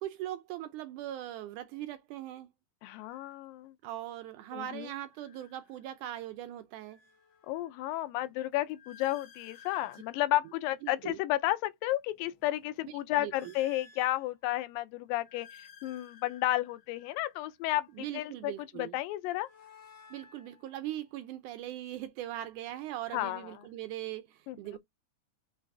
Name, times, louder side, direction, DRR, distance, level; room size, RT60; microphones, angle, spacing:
voice 1, 0.0-2.5 3.8-7.0 10.8-11.2 13.2-13.5 17.9-19.0 20.1-24.8, right 13 dB, 80° right, 1.8 m, -40 dB
voice 2, 2.8-3.7 4.5-4.9 7.5-19.5 23.1-23.5 24.5-24.8, left 16 dB, 90° left, 2.3 m, -32 dB
sound 1, 3.1-3.3 5.0-6.2 6.6-11.5 12.0-14.7 15.1-18.1 19.1-21.3, left 6 dB, 65° left, 1.1 m, -58 dB
5.8 x 3.1 x 2.5 m
omnidirectional pair, 3.9 m